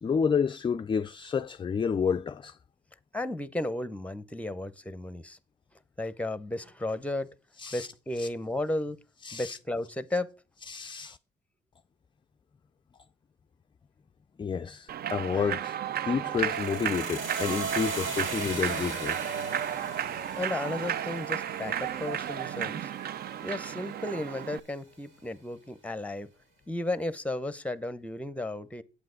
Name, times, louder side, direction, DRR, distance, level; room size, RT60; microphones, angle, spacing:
voice 1, 0.0-2.6 7.6-7.9 8.2-8.3 9.2-9.6 10.7-11.2 14.4-19.2, left 6 dB, 25° left, 0.3 m, -30 dB
voice 2, 3.1-5.4 6.0-7.3 7.7-9.0 9.3-10.3 20.4-22.9 23.4-26.3 26.7-28.8, left 1 dB, 5° left, 0.8 m, -34 dB
Human voice / Clapping / Cheering, 14.9-24.6, right 9 dB, 50° right, 0.4 m, -33 dB
sound 1, 16.3-24.4, right 3 dB, 80° right, 3.0 m, -40 dB
8.4 x 7.6 x 3.9 m
cardioid pair, 90°, 20 cm